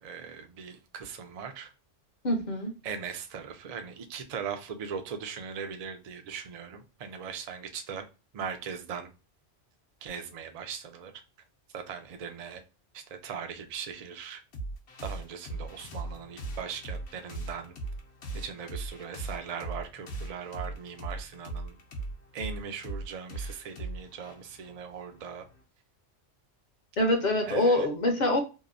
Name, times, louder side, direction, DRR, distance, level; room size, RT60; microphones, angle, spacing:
voice 1, 0.0-1.7 2.8-8.0 8.3-9.1 10.0-11.1 11.7-12.6 12.9-14.4 15.0-17.7 18.3-21.8 22.3-25.4 27.5-27.9, right 6 dB, 65° right, 0.4 m, -39 dB
voice 2, 2.2-2.8 27.0-28.4, left 1 dB, 50° left, 0.6 m, -25 dB
sound 1, 14.5-25.6, right 2 dB, 65° left, 0.9 m, -39 dB
2.8 x 2.0 x 2.4 m
omnidirectional pair, 1.2 m